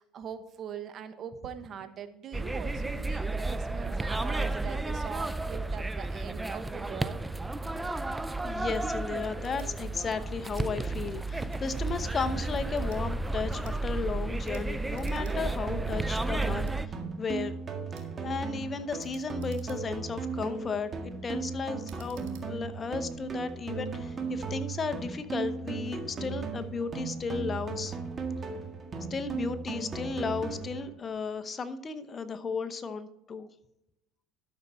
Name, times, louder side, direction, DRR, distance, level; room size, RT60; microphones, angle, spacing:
voice 1, 0.0-7.2, right 7 dB, 45° right, 10 dB, 1.1 m, -42 dB
sound 1, 2.3-16.9, right 2 dB, 10° right, 0.5 m, -32 dB
voice 2, 8.4-17.6 18.2-28.0 29.1-33.5, left 5 dB, 30° left, 10 dB, 0.8 m, -34 dB
sound 2, 9.4-9.7 10.4-10.7 11.5-11.8 12.6-13.0 13.5-13.8 14.4-14.7 14.9-15.4 15.7-15.8 16.6-16.8 17.9-18.1 19.0-20.1 20.6-20.9 21.8-22.5, right 11 dB, 85° right, 1.8 m, -57 dB
sound 3, 14.9-30.9, right 4 dB, 30° right, 1.8 m, -37 dB
12.5 x 6.7 x 4.3 m, 0.87 s
supercardioid pair, 100°, 0 cm